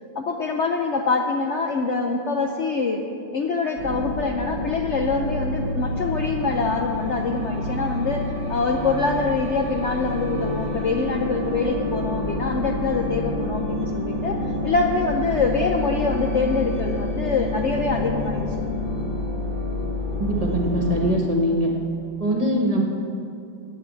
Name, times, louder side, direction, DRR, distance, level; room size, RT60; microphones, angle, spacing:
voice 1, 0.1-3.0 3.3-18.6, left 4 dB, 85° left, 3 dB, 0.6 m, -25 dB
sound 1, 3.8-21.2, left 1 dB, 40° left, 0.9 m, -28 dB
voice 2, 20.2-21.7 22.2-22.8, right 1 dB, 25° right, -1 dB, 1.1 m, -22 dB
9.3 x 9.0 x 8.3 m, 2.6 s
omnidirectional pair, 2.1 m